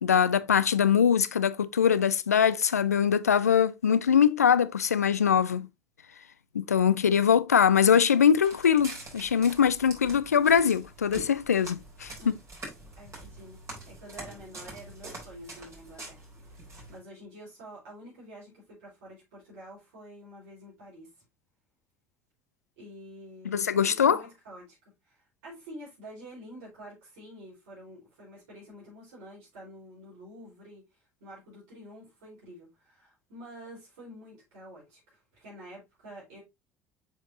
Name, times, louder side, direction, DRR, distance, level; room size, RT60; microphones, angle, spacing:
voice 1, 0.0-5.7 6.5-12.3 23.5-24.2, left 8 dB, 85° left, 0.4 m, -23 dB
Walk footsteps, 8.3-17.0, right 2 dB, 35° right, 3.8 m, -45 dB
voice 2, 12.9-16.2 16.9-21.1 22.8-36.4, equal, 70° right, 4.1 m, -48 dB
7.1 x 5.2 x 2.7 m
figure-of-eight pair, 60°, 8 cm